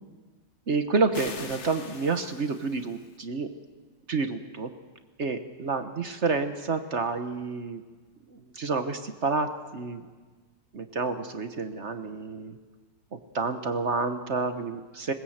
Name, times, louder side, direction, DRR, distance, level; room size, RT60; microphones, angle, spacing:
voice 1, 0.7-3.5 4.1-4.7 5.2-7.8 8.3-10.1 10.7-12.6 13.1-15.1, right 4 dB, 45° right, 8 dB, 1.2 m, -29 dB
sound 1, 1.1-3.2, left 4 dB, 40° left, 1.5 m, -42 dB
21.0 x 20.0 x 7.9 m, 1.4 s
omnidirectional pair, 1.9 m